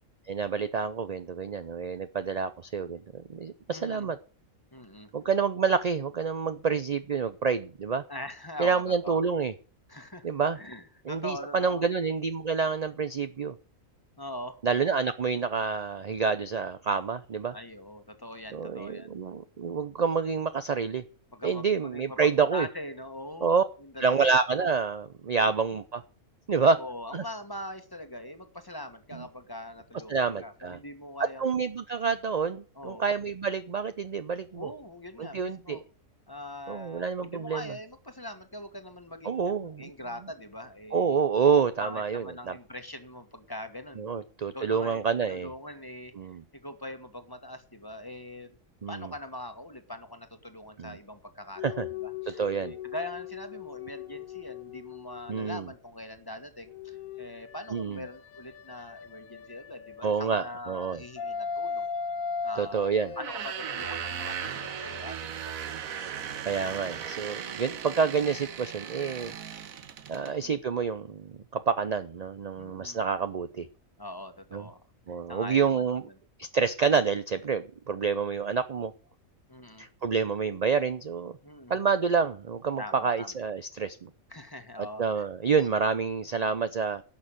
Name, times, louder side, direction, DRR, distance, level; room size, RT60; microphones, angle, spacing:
voice 1, 0.3-4.2 5.1-8.0 8.6-9.5 10.2-10.6 11.1-13.5 14.6-17.5 18.5-21.0 21.4-22.7 23.4-23.6 24.0-26.0 26.5-26.8 27.1-27.2 29.1-29.2 30.1-30.8 31.2-34.7 35.2-35.8 36.7-37.7 39.2-39.9 40.9-42.5 44.0-45.5 46.2-46.4 48.8-49.1 50.8-51.0 51.6-51.9 52.4-52.7 55.3-55.7 57.7-58.0 60.0-61.0 62.6-63.1 66.5-69.3 70.1-73.7 74.5-74.6 75.1-76.0 76.4-78.9 79.8-81.4 81.7-84.1 84.8-87.0, right 5 dB, 45° right, 11 dB, 0.5 m, -28 dB
voice 2, 3.7-4.1 4.7-5.1 8.1-9.2 9.9-10.3 10.5-11.8 14.2-14.6 17.5-19.2 21.3-23.5 23.8-24.3 26.6-31.5 32.7-33.1 34.5-35.8 36.3-41.2 41.8-44.2 44.5-46.1 46.5-48.6 48.9-65.6 70.2-70.6 72.6-73.0 74.0-74.8 75.3-76.1 79.5-79.9 81.4-81.8 82.8-83.3 84.3-85.2 86.3-86.6, left 1 dB, 15° left, 8 dB, 1.5 m, -42 dB
sound 1, 51.6-55.6 56.7-60.2 60.7-65.0, left 6 dB, 80° left, 1.7 m, -39 dB
sound 2, 63.1-70.3, right 8 dB, 80° right, 1.4 m, -37 dB
11.5 x 6.5 x 8.9 m, 0.38 s
omnidirectional pair, 1.4 m